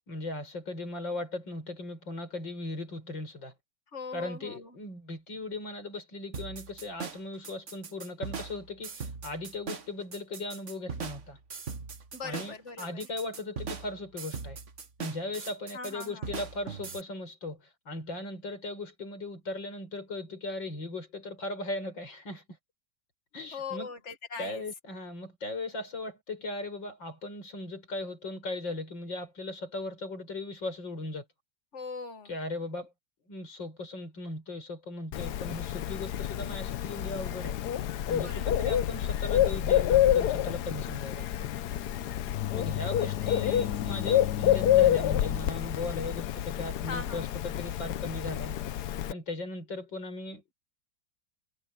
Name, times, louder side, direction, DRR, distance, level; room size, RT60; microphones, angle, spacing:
voice 1, 0.1-3.5 4.1-11.4 12.2-14.6 15.0-22.4 23.3-23.9 24.4-31.2 32.2-32.9 33.3-37.6 38.1-41.5 42.5-48.6 49.1-50.5, left 2 dB, 90° left, 6.5 m, -38 dB
voice 2, 3.9-4.7 12.1-13.0 15.7-16.3 23.5-24.6 31.7-32.3 38.1-38.6 42.9-43.6 46.9-47.3, left 5 dB, 40° left, 1.9 m, -41 dB
sound 1, 6.3-17.0, right 5 dB, 40° right, 1.7 m, -40 dB
Bird, 35.1-49.1, left 11 dB, 70° left, 1.2 m, -28 dB
omnidirectional pair, 2.0 m